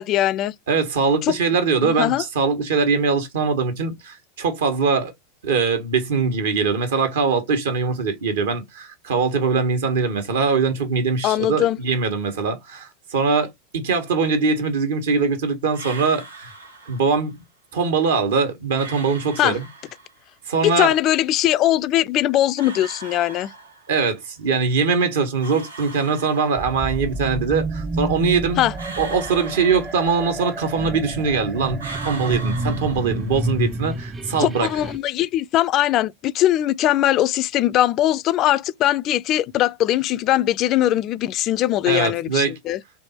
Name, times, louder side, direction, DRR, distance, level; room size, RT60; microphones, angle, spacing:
voice 1, 0.0-0.5 1.2-1.4 1.8-2.2 11.2-11.8 19.4-19.6 20.6-23.5 28.6-28.7 34.4-42.8, left 13 dB, 40° left, 0.3 m, -20 dB
voice 2, 0.7-5.1 5.4-16.5 16.9-17.4 17.7-19.7 20.5-20.9 23.9-28.6 29.0-34.7 41.8-42.5, right 5 dB, 70° right, 1.3 m, -22 dB
sound 1, 15.7-17.2 18.7-20.2 22.6-24.1 25.4-27.0 28.8-30.5 31.8-33.6, right 3 dB, 85° right, 1.0 m, -39 dB
sound 2, 26.6-35.0, right 2 dB, 20° right, 0.6 m, -29 dB
3.4 x 2.9 x 4.2 m
hypercardioid pair, 90°, 0 cm